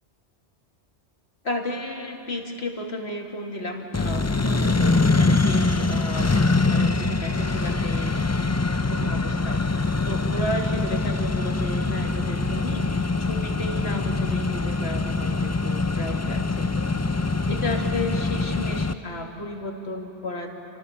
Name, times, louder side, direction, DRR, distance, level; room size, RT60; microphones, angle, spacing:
voice 1, 1.4-8.3 8.9-20.5, left 1 dB, 70° left, 2 dB, 2.7 m, -33 dB
Accelerating revving vroom, 3.9-18.9, left 3 dB, 20° left, 0.4 m, -24 dB
29.5 x 26.5 x 7.1 m, 2.7 s
omnidirectional pair, 1.1 m